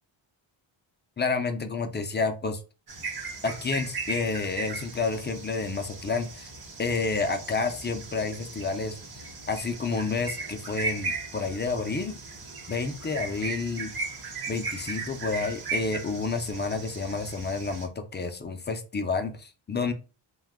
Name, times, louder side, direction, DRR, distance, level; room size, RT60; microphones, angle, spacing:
voice 1, 1.2-2.6 3.4-6.5 6.8-9.2 9.5-12.2 12.7-13.9 14.5-19.9, left 4 dB, 25° left, 6 dB, 0.3 m, -30 dB
sound 1, 2.9-17.9, right 4 dB, 45° right, 0.9 m, -37 dB
2.6 x 2.3 x 3.4 m, 0.34 s
cardioid pair, 105°, 50 cm